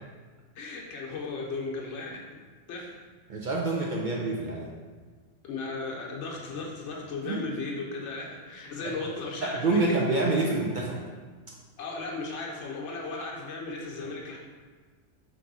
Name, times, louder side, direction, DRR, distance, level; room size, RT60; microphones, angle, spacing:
voice 1, 0.5-2.1 2.7-2.9 5.4-10.0 11.8-14.4, left 3 dB, 70° left, -2 dB, 1.0 m, -36 dB
voice 2, 3.3-4.7 7.3-7.4 8.8-8.9 9.4-11.0, right 2 dB, 65° right, -2 dB, 0.5 m, -27 dB
3.4 x 3.0 x 3.9 m, 1.4 s
omnidirectional pair, 1.3 m